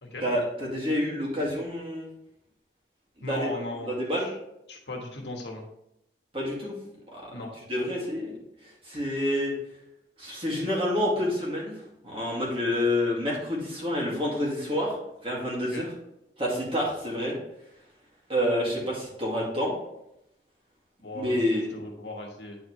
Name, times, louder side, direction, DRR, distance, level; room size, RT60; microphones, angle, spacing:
voice 1, 0.2-2.1 3.2-3.5 3.7-4.3 6.3-6.7 7.1-7.3 7.7-8.3 8.6-9.5 10.2-11.8 12.0-15.0 15.2-15.9 16.4-17.3 18.3-19.7 21.1-21.7, left 1 dB, 30° right, -4 dB, 2.2 m, -28 dB
voice 2, 3.2-3.9 4.2-4.3 4.7-5.6 7.3-7.5 15.7-15.8 21.0-22.6, left 1 dB, 75° left, 1 dB, 1.4 m, -37 dB
9.5 x 4.6 x 3.2 m, 0.84 s
head